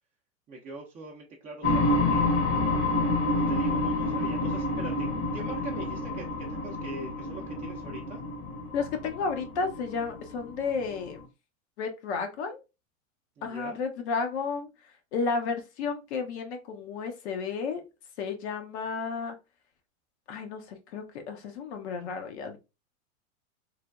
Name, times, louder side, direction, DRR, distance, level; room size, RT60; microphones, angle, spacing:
voice 1, 0.5-2.3 3.3-5.1 5.3-8.2 13.4-13.8, right 3 dB, 20° right, -2 dB, 0.5 m, -42 dB
sound 1, 1.6-11.2, left 2 dB, 30° left, 0.8 m, -28 dB
voice 2, 8.7-11.2 11.8-12.6 13.4-17.8 18.2-19.4 20.3-22.6, left 5 dB, 55° left, 5 dB, 0.7 m, -32 dB
3.2 x 2.1 x 2.4 m, 0.27 s
hypercardioid pair, 105°, 40 cm